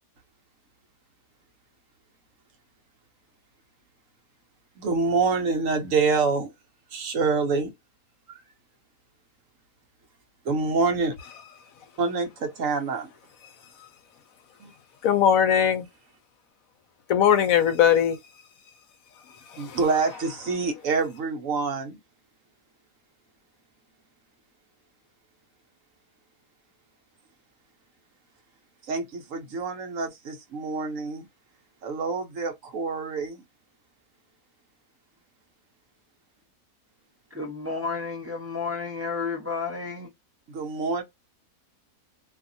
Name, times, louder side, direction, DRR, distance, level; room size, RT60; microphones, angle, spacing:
voice 1, 4.8-6.5 6.9-7.7 8.3-8.4 10.4-11.2 12.0-13.1 14.6-14.7 19.6-22.0 28.8-31.3 31.8-33.4 40.5-41.0, right 4 dB, 65° right, 1.0 m, -26 dB
voice 2, 15.0-15.9 17.1-18.2 19.5-19.8, left 9 dB, 70° left, 1.0 m, -20 dB
voice 3, 37.3-40.1, left 4 dB, 15° right, 0.5 m, -31 dB
2.7 x 2.4 x 2.6 m
omnidirectional pair, 1.6 m